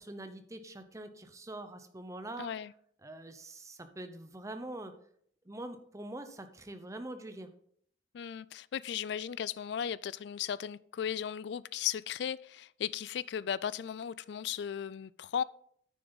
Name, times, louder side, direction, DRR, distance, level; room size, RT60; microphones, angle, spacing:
voice 1, 0.0-2.5 3.0-4.9 5.5-7.5, right 1 dB, 15° right, 0.7 m, -44 dB
voice 2, 2.4-2.7 8.1-15.4, left 8 dB, 60° left, 0.3 m, -36 dB
9.4 x 6.8 x 4.0 m
head